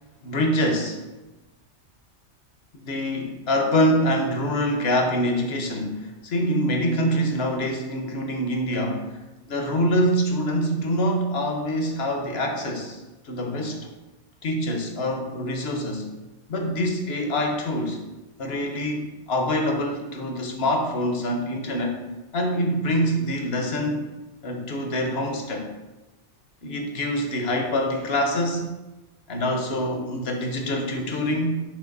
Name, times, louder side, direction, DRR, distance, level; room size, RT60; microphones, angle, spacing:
voice 1, 0.2-1.0 2.8-9.1 9.5-13.9 14.4-16.1 16.5-18.0 18.4-22.0 22.3-24.1 24.4-25.7 26.6-28.7 29.3-31.6, equal, 60° left, 3 dB, 1.2 m, -25 dB
7.1 x 3.1 x 5.2 m, 1.1 s
omnidirectional pair, 1.2 m